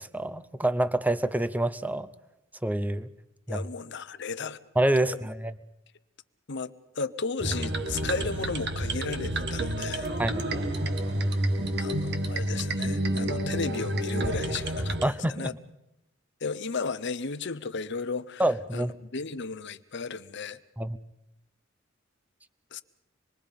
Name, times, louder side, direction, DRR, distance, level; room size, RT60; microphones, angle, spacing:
voice 1, 0.0-2.1 2.6-3.1 3.5-3.6 4.8-5.6 10.2-10.4 15.0-15.5 18.4-18.9 20.8-21.0, right 1 dB, 10° right, 0.7 m, -27 dB
voice 2, 3.5-4.6 5.0-5.3 6.5-10.1 11.8-15.5 16.4-18.4 18.7-20.6 22.7-22.8, left 4 dB, 60° left, 0.9 m, -34 dB
sound 1, 7.4-15.0, right 1 dB, 55° right, 1.7 m, -29 dB
26.5 x 21.5 x 5.3 m
head